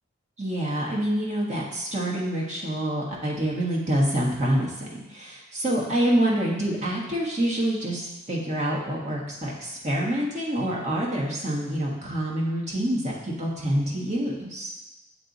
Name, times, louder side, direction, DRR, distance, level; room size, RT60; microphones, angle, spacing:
voice 1, 0.4-14.7, right 1 dB, 35° right, -4 dB, 1.3 m, -27 dB
7.7 x 3.3 x 4.0 m, 1.0 s
head